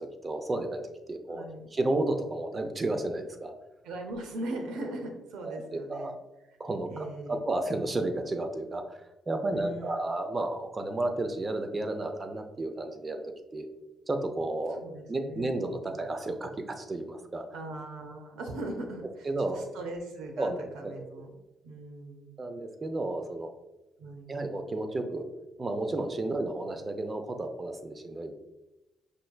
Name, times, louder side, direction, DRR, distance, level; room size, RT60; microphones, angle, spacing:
voice 1, 0.0-1.4 1.7-3.5 5.4-6.2 6.6-9.0 9.3-13.2 13.5-13.7 14.1-14.8 15.1-17.5 19.3-19.7 20.4-21.0 22.4-23.5 24.3-25.3 25.6-28.3, right 2 dB, 30° right, 6 dB, 0.5 m, -32 dB
voice 2, 1.3-1.7 3.8-6.1 6.9-7.4 9.5-9.9 14.8-15.5 15.9-16.1 17.5-19.3 19.5-20.5 20.7-21.3 21.6-22.3 24.0-24.3, right 2 dB, 90° right, 4 dB, 0.7 m, -39 dB
5.4 x 3.3 x 2.3 m, 0.99 s
cardioid pair, 90°, 0 cm